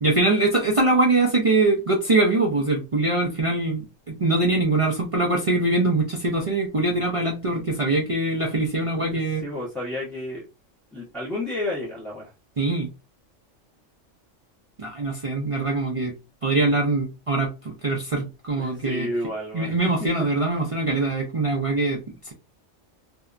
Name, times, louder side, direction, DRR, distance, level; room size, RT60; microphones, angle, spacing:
voice 1, 0.0-9.4 12.6-12.9 14.8-16.1 16.4-19.1 19.5-22.3, right 2 dB, 55° right, 0.3 m, -23 dB
voice 2, 9.0-10.4 10.9-12.3 18.6-20.1, left 1 dB, ahead, 0.6 m, -31 dB
2.7 x 2.2 x 2.4 m
omnidirectional pair, 1.3 m